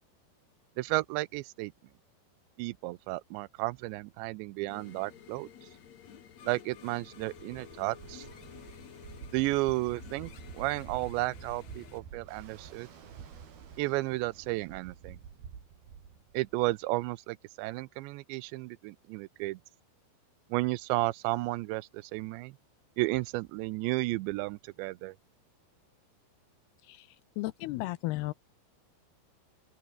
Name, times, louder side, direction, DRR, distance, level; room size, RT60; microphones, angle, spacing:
voice 1, 0.8-1.7 2.6-5.5 6.4-8.3 9.3-12.9 13.8-15.2 16.3-19.6 20.5-22.5 23.0-25.2, right 20 dB, 90° right, 3.0 m, -33 dB
sound 1, 4.7-12.0, left 9 dB, 50° left, 2.5 m, -51 dB
Ocean, 7.0-16.8, right 7 dB, 60° right, 5.3 m, -49 dB
voice 2, 27.4-28.3, left 19 dB, 80° left, 2.4 m, -34 dB
open air
omnidirectional pair, 5.1 m